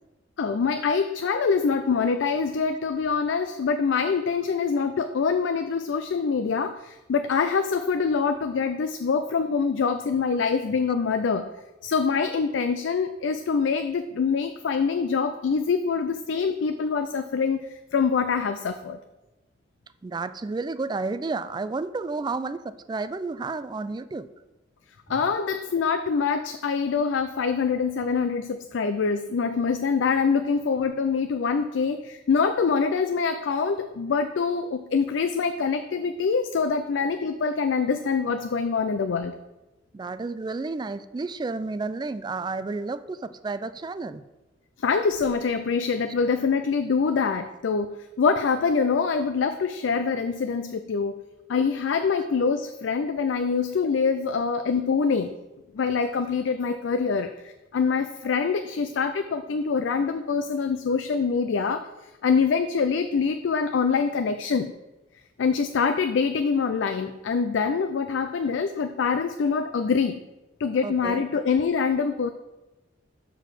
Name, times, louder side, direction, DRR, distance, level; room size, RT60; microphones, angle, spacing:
voice 1, 0.4-11.5 11.8-19.0 25.1-39.4 44.8-51.2 51.5-55.4 55.7-61.9 62.2-64.7 65.4-70.2 70.6-72.3, left 5 dB, 85° left, 9 dB, 0.4 m, -25 dB
voice 2, 20.0-24.3 39.9-44.2 54.3-54.4 70.8-71.2, right 3 dB, 25° right, 13 dB, 0.3 m, -31 dB
6.9 x 4.7 x 6.0 m, 1.0 s
head